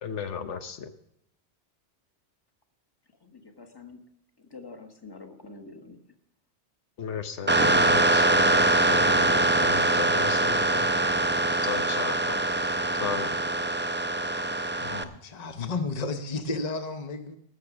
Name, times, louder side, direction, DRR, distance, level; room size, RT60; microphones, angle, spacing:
voice 1, 0.0-0.9 7.0-10.9 11.6-12.4 13.0-13.3, left 7 dB, 85° left, 9 dB, 1.3 m, -35 dB
voice 2, 3.2-4.0 4.5-6.0, left 3 dB, 20° left, 6 dB, 1.4 m, -46 dB
sound 1, 7.5-15.0, right 2 dB, 15° right, 0.3 m, -23 dB
voice 3, 14.8-17.4, left 3 dB, 40° left, 7 dB, 1.0 m, -32 dB
19.0 x 6.6 x 6.0 m, 0.81 s
omnidirectional pair, 1.2 m